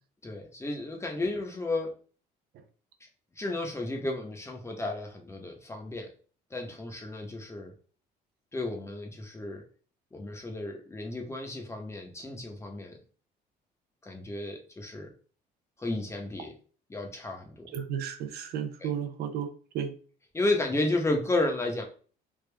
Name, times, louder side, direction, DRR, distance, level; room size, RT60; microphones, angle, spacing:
voice 1, 0.2-1.9 3.4-6.1 6.5-7.7 8.5-9.6 10.1-13.0 14.0-15.1 15.8-16.5 16.9-17.7 18.8-18.9 20.3-21.9, left 2 dB, 15° left, 2 dB, 0.8 m, -32 dB
voice 2, 17.7-19.9, right 8 dB, 70° right, 7 dB, 0.6 m, -34 dB
3.5 x 2.3 x 3.3 m, 0.41 s
cardioid pair, 110°, 17 cm